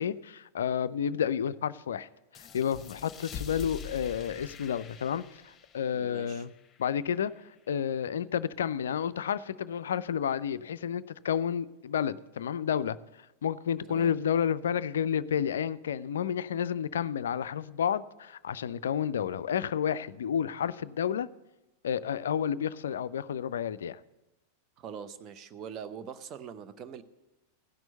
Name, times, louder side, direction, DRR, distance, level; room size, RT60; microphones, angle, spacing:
voice 1, 0.0-2.1 2.4-6.5 6.8-7.3 7.7-13.0 13.4-21.3 21.8-24.0, left 8 dB, 65° left, 0.3 m, -30 dB
sound 1, 2.3-7.6, left 8 dB, 20° left, 1.1 m, -45 dB
voice 2, 5.9-6.4 13.9-14.1 24.8-27.0, right 7 dB, 35° right, 0.7 m, -43 dB
16.0 x 6.1 x 6.6 m
figure-of-eight pair, 90°, 0 cm